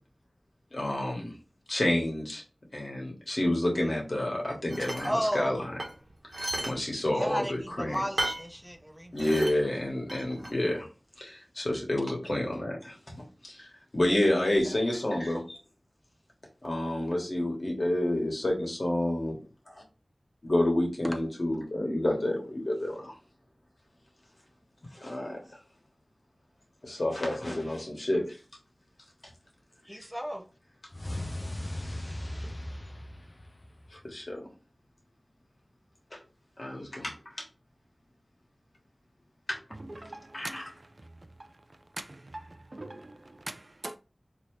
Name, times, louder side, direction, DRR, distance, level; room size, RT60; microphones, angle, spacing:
voice 1, 0.7-1.3 1.7-2.4 2.7-5.6 6.4-8.0 9.1-10.9 11.2-13.1 13.4-13.7 13.9-15.6 16.6-19.4 20.4-23.1 24.9-25.4 26.8-28.3 34.0-34.4 36.1-36.2 36.6-37.1 39.5-39.6 40.3-40.6, left 1 dB, 60° left, 1.3 m, -29 dB
sound 1, 4.7-5.1 5.8-6.8 7.1-7.2 8.2-8.5 9.2-9.6 10.1-10.5, right 1 dB, 70° right, 1.1 m, -33 dB
voice 2, 5.0-5.6 7.1-9.6 14.6-14.8 29.9-30.4, equal, 5° right, 0.6 m, -34 dB
sound 2, 30.9-34.1, left 1 dB, 40° left, 0.5 m, -37 dB
voice 3, 39.7-41.5 42.0-44.0, right 2 dB, 55° right, 0.4 m, -43 dB
4.1 x 2.8 x 3.1 m
wide cardioid pair, 50°, 0 cm